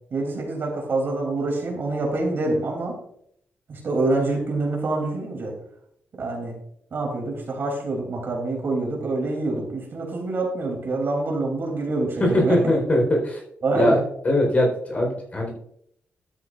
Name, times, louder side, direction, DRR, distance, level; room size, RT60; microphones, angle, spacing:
voice 1, 0.1-3.0 3.7-5.5 6.2-6.6 6.9-12.6 13.6-14.0, right 2 dB, 55° right, 0 dB, 3.1 m, -26 dB
voice 2, 12.2-13.4 13.7-15.5, left 1 dB, 35° left, 0 dB, 4.2 m, -21 dB
12.5 x 9.7 x 2.5 m, 0.70 s
cardioid pair, 100°, 4 cm